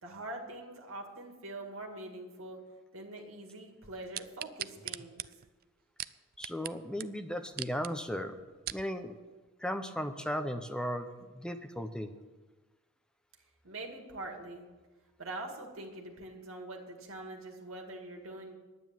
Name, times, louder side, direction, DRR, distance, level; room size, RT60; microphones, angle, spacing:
voice 1, 0.0-2.6 2.9-5.3 13.6-14.7 15.2-18.6, right 2 dB, 75° right, 2 dB, 2.2 m, -44 dB
sound 1, 4.1-6.7 7.0-7.1 7.5-7.9 8.4-8.9 9.5-9.6, right 13 dB, 45° right, 0.3 m, -40 dB
voice 2, 6.4-8.4 8.7-9.2 9.6-12.1, equal, 5° left, 8 dB, 0.7 m, -36 dB
10.5 x 9.5 x 7.6 m, 1.3 s
head